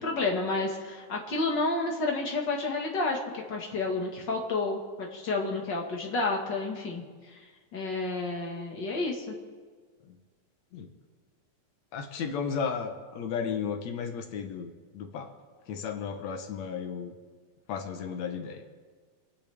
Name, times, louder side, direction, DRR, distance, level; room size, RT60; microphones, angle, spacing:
voice 1, 0.0-7.0 7.7-9.3, left 3 dB, 40° left, 0 dB, 2.0 m, -30 dB
voice 2, 11.9-14.7 14.9-15.3 15.7-17.1 17.7-18.6, left 6 dB, 70° left, 6 dB, 2.2 m, -34 dB
28.0 x 10.5 x 3.5 m, 1.5 s
omnidirectional pair, 3.4 m